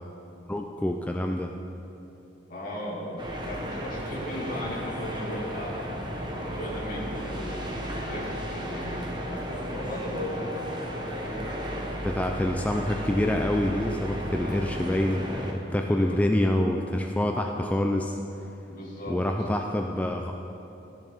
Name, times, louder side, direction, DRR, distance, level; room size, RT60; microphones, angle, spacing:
voice 1, 0.5-1.5 11.3-11.7 12.0-18.2 19.1-20.3, left 1 dB, 10° left, 3 dB, 0.3 m, -27 dB
voice 2, 2.5-5.8 6.3-9.0 9.3-10.5 15.8-16.2 18.7-19.2, left 1 dB, 50° left, -8 dB, 2.3 m, -37 dB
sound 1, 3.2-15.5, equal, 25° right, 1.0 m, -34 dB
14.0 x 7.0 x 3.5 m, 2.9 s
head